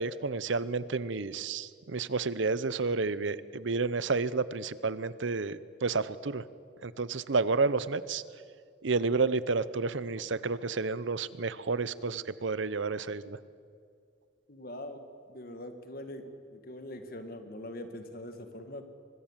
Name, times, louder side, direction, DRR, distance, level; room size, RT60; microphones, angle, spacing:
voice 1, 0.0-6.4 6.8-8.2 8.8-13.4, right 4 dB, 75° right, 17 dB, 0.8 m, -30 dB
voice 2, 14.5-15.0 15.3-16.2 16.5-18.9, left 1 dB, 50° left, 7 dB, 2.0 m, -42 dB
24.0 x 21.0 x 7.4 m, 2.3 s
head